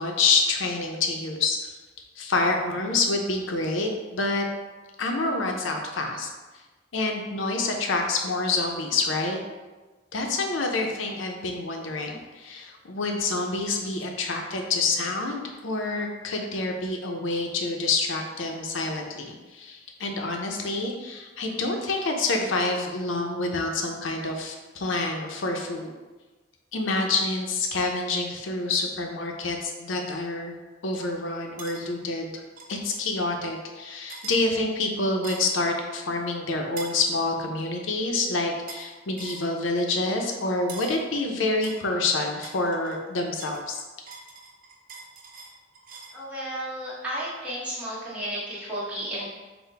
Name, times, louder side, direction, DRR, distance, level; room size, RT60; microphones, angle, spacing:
voice 1, 0.0-1.6 2.2-4.4 5.0-6.3 6.9-9.4 10.1-25.9 26.7-30.5 30.8-32.3 32.7-43.8, left 3 dB, 85° left, 2 dB, 0.6 m, -27 dB
sound 1, 31.6-31.8 32.6-32.8 34.1-34.4 35.2-35.6 36.8-37.0 38.7-38.9 39.2-39.5 40.7-41.0 41.6-43.0 43.4-46.2, right 4 dB, 45° right, 0.5 m, -42 dB
voice 2, 46.1-49.3, equal, 5° right, -9 dB, 1.2 m, -33 dB
5.6 x 2.2 x 3.3 m, 1.3 s
head